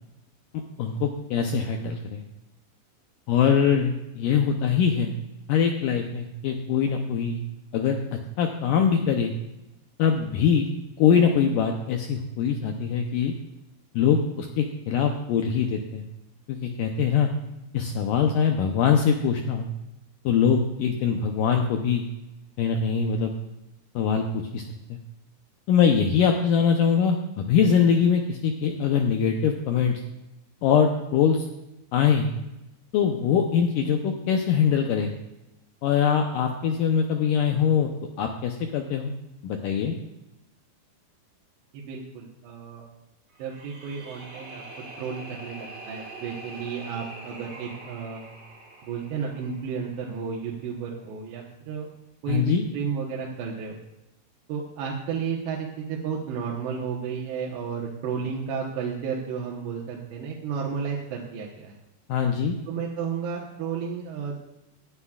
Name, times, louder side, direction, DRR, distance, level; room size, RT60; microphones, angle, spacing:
voice 1, 0.5-2.2 3.3-5.1 5.5-7.4 7.7-9.3 10.0-10.7 11.0-13.3 13.9-16.0 16.5-17.3 17.7-19.7 20.3-22.0 22.6-23.3 24.0-24.7 24.9-25.0 25.7-30.0 30.6-31.5 31.9-32.3 32.9-35.1 35.8-37.9 38.2-39.1 39.4-40.0 52.3-52.6 62.1-62.6, left 7 dB, 85° left, 3 dB, 1.9 m, -23 dB
voice 2, 41.7-42.9 43.4-44.6 45.0-48.2 48.8-51.9 52.2-53.8 54.5-61.8 62.7-64.4, right 6 dB, 85° right, -3 dB, 3.4 m, -32 dB
sound 1, 43.3-50.4, right 2 dB, 35° right, 3.4 m, -44 dB
18.0 x 11.0 x 2.4 m, 0.94 s
omnidirectional pair, 4.8 m